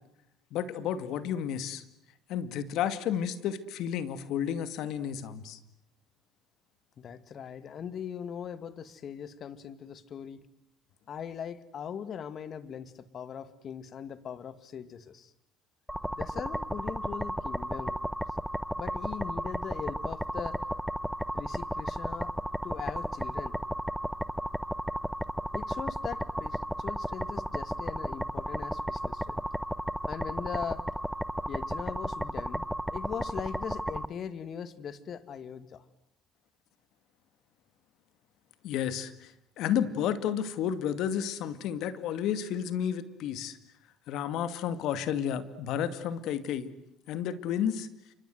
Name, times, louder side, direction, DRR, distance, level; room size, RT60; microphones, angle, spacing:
voice 1, 0.5-1.8 2.3-5.6 38.6-43.6 44.1-46.7 47.1-47.9, left 9 dB, 70° left, 13 dB, 2.3 m, -31 dB
voice 2, 7.0-10.5 11.1-15.3 16.2-18.0 18.8-20.6 21.3-22.3 22.6-23.6 25.5-29.4 30.1-30.8 31.5-32.7 32.9-35.8, left 8 dB, 50° left, 14 dB, 2.2 m, -40 dB
sound 1, 15.9-34.1, equal, ahead, 1.1 m, -34 dB
29.0 x 26.0 x 8.0 m, 0.80 s
supercardioid pair, 85°, 0 cm